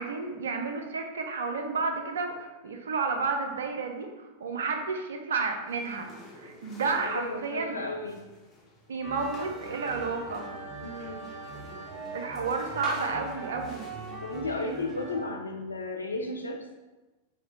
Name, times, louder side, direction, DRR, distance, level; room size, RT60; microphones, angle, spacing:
voice 1, 0.0-7.8 8.9-10.5 12.1-13.9, right 4 dB, 65° right, 4 dB, 0.4 m, -31 dB
sound 1, 5.7-15.1, left 1 dB, 25° left, 0.9 m, -48 dB
voice 2, 6.8-8.2 10.8-11.2 14.2-16.6, left 2 dB, 80° left, 3 dB, 0.4 m, -34 dB
sound 2, 9.0-15.2, right 3 dB, 10° right, 0.8 m, -41 dB
4.2 x 2.1 x 3.5 m, 1.1 s
figure-of-eight pair, 90°, 0 cm